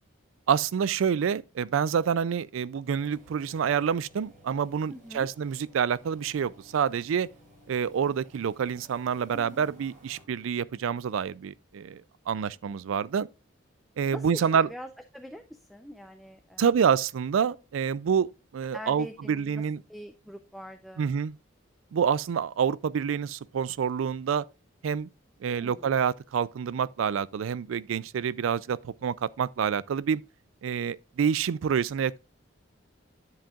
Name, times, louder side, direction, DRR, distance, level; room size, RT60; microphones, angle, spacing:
voice 1, 0.5-7.3 7.7-13.3 14.0-14.7 16.6-19.8 21.0-21.3 21.9-24.4 24.8-25.1 25.4-30.2 30.6-32.2, right 7 dB, 85° right, 0.4 m, -27 dB
sound 1, 2.8-10.2, equal, 40° right, 3.7 m, -56 dB
voice 2, 4.9-5.3 9.3-9.9 14.1-16.7 18.7-19.6 19.9-21.1 25.5-25.9, equal, ahead, 0.5 m, -43 dB
10.0 x 7.7 x 2.4 m
head